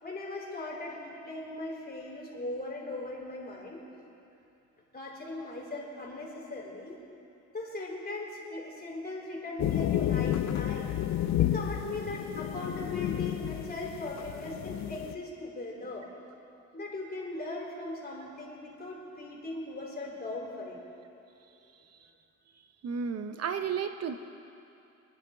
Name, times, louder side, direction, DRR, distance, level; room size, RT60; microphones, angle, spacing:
voice 1, 0.0-3.8 4.9-7.0 7.5-11.0 11.4-16.1 16.7-20.8, left 2 dB, 30° left, -3 dB, 3.8 m, -39 dB
sound 1, 9.6-15.1, left 11 dB, 65° left, 0.6 m, -31 dB
voice 2, 22.8-24.2, right 6 dB, 55° right, 8 dB, 0.8 m, -32 dB
24.5 x 10.5 x 3.8 m, 2.8 s
cardioid pair, 90°, 30 cm